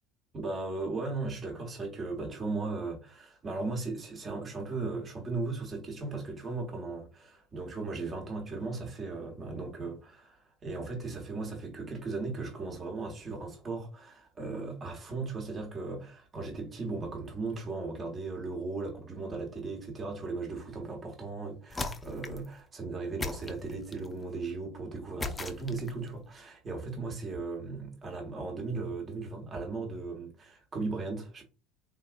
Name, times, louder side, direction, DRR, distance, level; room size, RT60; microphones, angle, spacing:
voice 1, 0.3-31.4, right 3 dB, 30° right, 1.0 m, -37 dB
sound 1, 21.7-22.5 23.2-24.1 25.2-26.1, left 3 dB, 20° left, 0.5 m, -37 dB
3.5 x 2.6 x 2.4 m
figure-of-eight pair, 65°, 0 cm